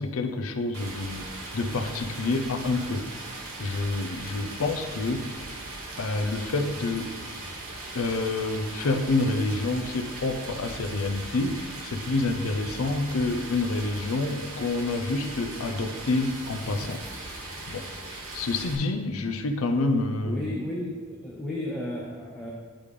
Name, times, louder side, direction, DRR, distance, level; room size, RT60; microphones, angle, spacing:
voice 1, 0.0-5.3 6.0-7.1 7.9-17.4 17.7-17.9 18.3-20.6, left 2 dB, 75° left, 7 dB, 0.5 m, -28 dB
Stream, 0.7-18.7, right 2 dB, 75° right, 1.2 m, -39 dB
voice 2, 20.2-20.9 21.2-22.5, left 1 dB, ahead, -6 dB, 0.7 m, -33 dB
10.0 x 3.5 x 3.3 m, 1.4 s
head